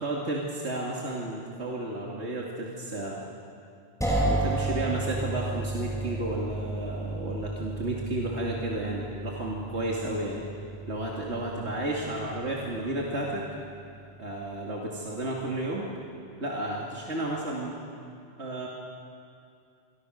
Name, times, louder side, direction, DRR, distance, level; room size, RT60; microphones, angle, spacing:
voice 1, 0.0-3.2 4.2-10.4 10.9-13.4 14.2-15.9 16.4-17.8 18.4-18.7, right 1 dB, 70° right, -3 dB, 2.8 m, -32 dB
sound 1, 4.0-13.8, right 2 dB, 5° left, 5.5 m, -33 dB
27.0 x 24.0 x 6.5 m, 2.5 s
omnidirectional pair, 1.2 m